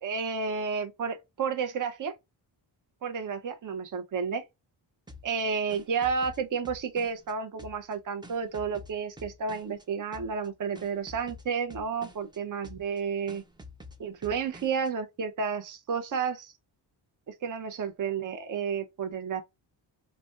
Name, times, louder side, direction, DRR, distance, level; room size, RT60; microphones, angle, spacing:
voice 1, 0.0-2.1 3.0-4.4 5.2-13.4 14.0-16.5 17.3-19.4, right 6 dB, 45° right, 0.7 m, -31 dB
sound 1, 5.1-7.3 7.6-9.8 10.1-10.5 10.8-12.4 12.6-13.0 13.3-14.9, left 2 dB, 10° right, 0.4 m, -48 dB
3.2 x 2.2 x 2.4 m
wide cardioid pair, 105°, 44 cm